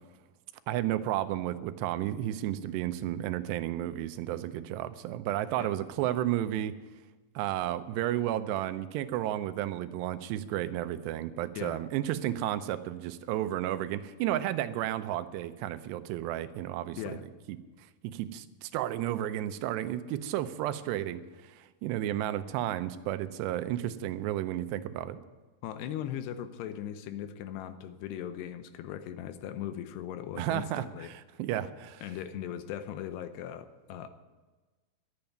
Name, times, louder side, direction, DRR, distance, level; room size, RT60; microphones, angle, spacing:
voice 1, 0.7-6.7 7.4-17.2 17.5-17.6 18.0-25.2 30.4-32.0, right 12 dB, 85° right, 11 dB, 2.8 m, -32 dB
voice 2, 25.6-31.1 32.0-34.1, left 10 dB, 80° left, 11 dB, 2.8 m, -39 dB
12.0 x 8.7 x 9.2 m, 1.3 s
omnidirectional pair, 4.9 m